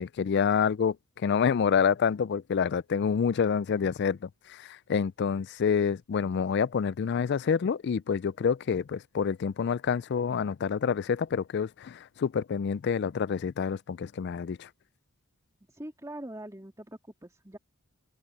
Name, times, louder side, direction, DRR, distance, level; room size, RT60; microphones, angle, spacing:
voice 1, 0.0-14.7, left 6 dB, 50° left, 0.3 m, -27 dB
voice 2, 15.7-17.6, right 1 dB, 15° right, 2.7 m, -43 dB
head